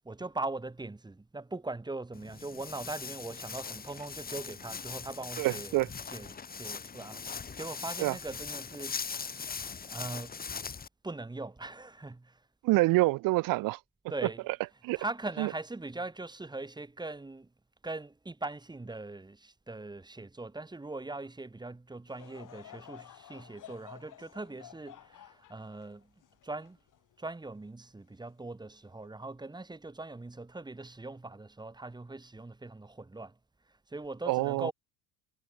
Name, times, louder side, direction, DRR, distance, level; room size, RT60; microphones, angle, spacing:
voice 1, 0.0-9.3 9.9-10.4 11.0-12.4 14.1-14.6 14.9-17.5 17.8-26.1 26.4-26.8 27.2-33.3 33.9-34.7, right 2 dB, 10° right, 4.0 m, -41 dB
Walk footsteps, 2.1-10.9, left 6 dB, 20° left, 2.1 m, -40 dB
voice 2, 5.4-5.9 8.0-8.1 12.6-13.8 14.8-15.0 15.4-15.5 34.3-34.7, right 21 dB, 50° right, 0.7 m, -26 dB
Laughter / Crowd, 22.1-27.5 28.1-28.2 29.0-29.3, left 12 dB, 45° left, 6.5 m, -53 dB
supercardioid pair, 115°, 43 cm